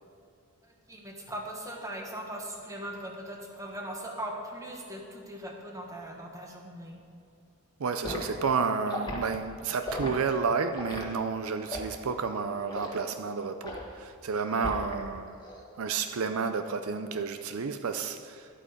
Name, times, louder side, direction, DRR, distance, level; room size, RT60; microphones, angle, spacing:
voice 1, 0.9-7.0, right 1 dB, 15° right, 0 dB, 1.3 m, -39 dB
voice 2, 7.8-15.3 15.8-18.5, right 5 dB, 70° right, 8 dB, 0.5 m, -31 dB
Liquid, 8.0-8.3 8.9-9.2 9.8-10.1 10.7-11.0 11.7-12.0 12.7-13.0 13.6-13.9 14.6-15.0 15.3-15.6, left 1 dB, 20° left, 1.5 m, -36 dB
11.5 x 8.5 x 5.1 m, 2.6 s
head